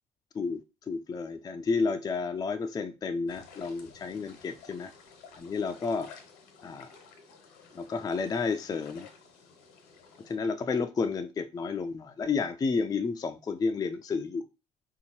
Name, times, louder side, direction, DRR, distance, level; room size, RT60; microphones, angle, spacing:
voice 1, 0.3-4.9 5.4-6.1 6.6-6.9 7.7-9.1 10.2-14.5, left 4 dB, 25° left, 6 dB, 0.3 m, -31 dB
sound 1, 3.3-10.4, left 6 dB, 85° left, 0.9 m, -53 dB
3.6 x 2.8 x 2.9 m, 0.30 s
supercardioid pair, 80°, 15 cm